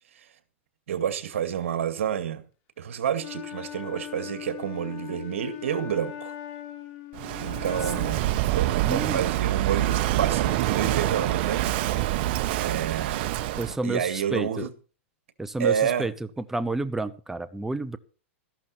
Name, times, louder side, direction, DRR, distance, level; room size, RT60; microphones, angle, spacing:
voice 1, 0.9-2.4 2.8-6.3 7.4-8.2 8.5-11.7 12.5-13.3 13.8-14.7 15.6-16.1, right 9 dB, 75° right, 2.2 m, -29 dB
Wind instrument woodwind instrument, 3.1-8.3, left 11 dB, 40° left, 3.4 m, -39 dB
Walk footsteps / Wind / Waves surf, 7.1-13.8, right 14 dB, 55° right, 1.1 m, -26 dB
voice 2, 8.8-9.2 13.6-14.7 15.4-16.1 16.4-18.0, right 2 dB, 5° right, 0.8 m, -30 dB
14.0 x 11.5 x 4.4 m
hypercardioid pair, 130°, 7 cm